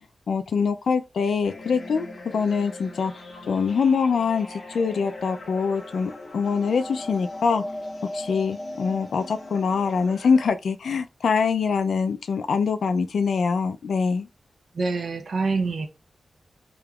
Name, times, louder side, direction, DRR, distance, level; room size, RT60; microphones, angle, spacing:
voice 1, 0.3-2.1 2.3-3.1 3.5-7.6 8.1-14.3, left 5 dB, 75° left, 0.3 m, -24 dB
sound 1, 1.4-10.5, left 1 dB, 45° left, 1.8 m, -38 dB
voice 2, 14.7-15.9, right 4 dB, 55° right, 0.6 m, -25 dB
5.0 x 2.9 x 2.3 m
wide cardioid pair, 150°, 0 cm